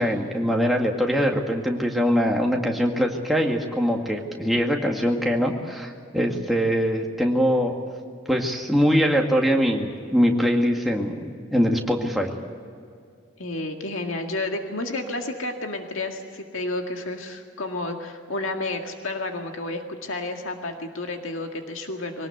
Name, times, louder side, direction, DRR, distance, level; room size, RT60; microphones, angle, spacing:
voice 1, 0.0-7.7 8.3-11.2 11.5-12.3, equal, ahead, 0 dB, 2.0 m, -22 dB
voice 2, 13.4-22.3, left 2 dB, 90° left, 3 dB, 2.0 m, -31 dB
23.0 x 18.5 x 8.1 m, 2.3 s
head